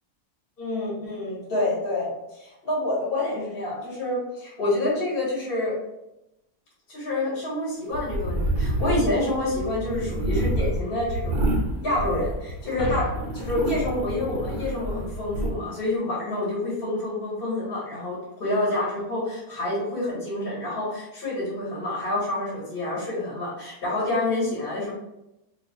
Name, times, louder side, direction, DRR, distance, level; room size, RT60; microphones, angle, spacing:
voice 1, 0.6-5.8 6.9-11.5 11.8-24.9, left 2 dB, 40° left, -7 dB, 1.5 m, -28 dB
sound 1, 7.9-12.7 13.1-15.5, right 1 dB, 60° right, 0.5 m, -28 dB
sound 2, 12.6-15.2, left 1 dB, 65° left, 1.0 m, -34 dB
2.9 x 2.4 x 3.9 m, 0.91 s
omnidirectional pair, 1.6 m